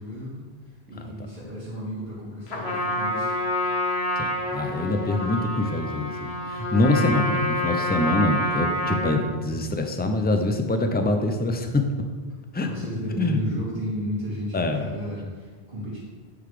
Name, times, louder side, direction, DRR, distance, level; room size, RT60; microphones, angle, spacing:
voice 1, 0.0-3.4 4.0-4.1 9.1-9.6 12.6-16.0, equal, 45° right, -12 dB, 2.5 m, -34 dB
Trumpet, 2.5-9.3, left 1 dB, 70° left, 1.3 m, -28 dB
voice 2, 4.2-11.9 12.5-12.7 13.2-13.4 14.5-14.9, left 2 dB, 15° left, 5 dB, 0.3 m, -24 dB
9.1 x 3.9 x 5.0 m, 1.5 s
omnidirectional pair, 1.1 m